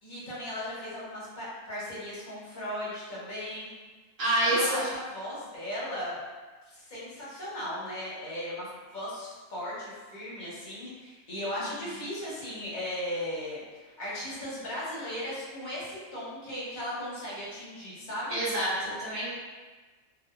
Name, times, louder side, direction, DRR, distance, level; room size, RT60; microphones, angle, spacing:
voice 1, 0.0-3.7 4.4-6.1 6.7-8.7 8.9-18.4, left 1 dB, 40° left, -8 dB, 0.8 m, -37 dB
voice 2, 4.2-4.9 18.3-19.3, right 1 dB, 55° right, -11 dB, 1.0 m, -27 dB
2.7 x 2.3 x 2.3 m, 1.3 s
omnidirectional pair, 1.4 m